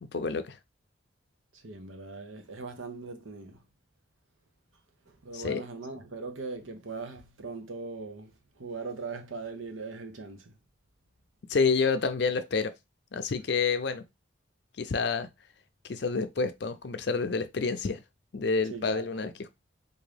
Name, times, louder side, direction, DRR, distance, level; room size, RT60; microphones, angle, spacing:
voice 1, 0.0-0.6 5.3-5.6 11.5-12.7 13.1-14.0 14.8-15.3 15.9-18.0 18.3-19.5, left 4 dB, 60° left, 0.5 m, -28 dB
voice 2, 1.5-3.6 5.1-10.5 18.6-19.3, right 4 dB, 90° right, 0.9 m, -40 dB
3.7 x 2.7 x 3.3 m
head